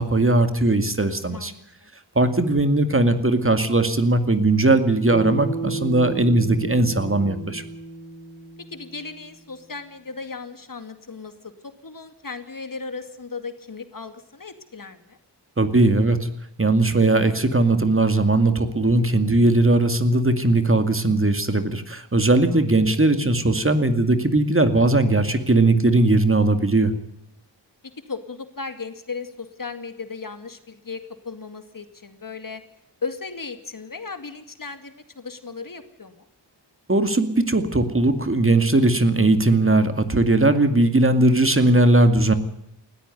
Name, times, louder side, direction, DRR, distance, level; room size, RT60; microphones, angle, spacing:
voice 1, 0.0-1.5 2.2-7.6 15.6-16.3 16.6-26.9 36.9-42.3, right 2 dB, 30° right, 9 dB, 2.3 m, -19 dB
voice 2, 1.3-1.9 8.6-15.2 22.5-22.6 27.8-32.6 33.0-36.3, left 4 dB, 50° left, 9 dB, 2.4 m, -36 dB
Bass guitar, 5.1-9.5, right 3 dB, 20° left, 3.9 m, -33 dB
20.0 x 14.0 x 9.3 m, 0.81 s
cardioid pair, 50°, 43 cm